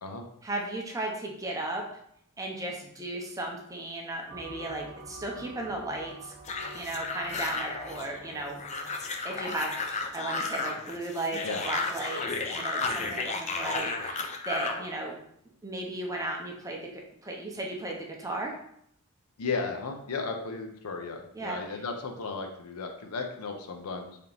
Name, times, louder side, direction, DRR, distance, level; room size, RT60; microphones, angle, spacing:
voice 1, 0.4-1.9 2.4-6.3 6.7-8.6 8.9-15.2 15.6-18.5 21.3-21.6, right 2 dB, 15° right, 0 dB, 0.6 m, -35 dB
sound 1, 4.3-10.1, right 2 dB, 60° right, 0.6 m, -48 dB
sound 2, 6.5-14.8, left 4 dB, 30° left, 0.4 m, -33 dB
voice 2, 19.4-24.2, left 4 dB, 80° left, 4 dB, 0.6 m, -35 dB
3.4 x 2.8 x 3.8 m, 0.71 s
head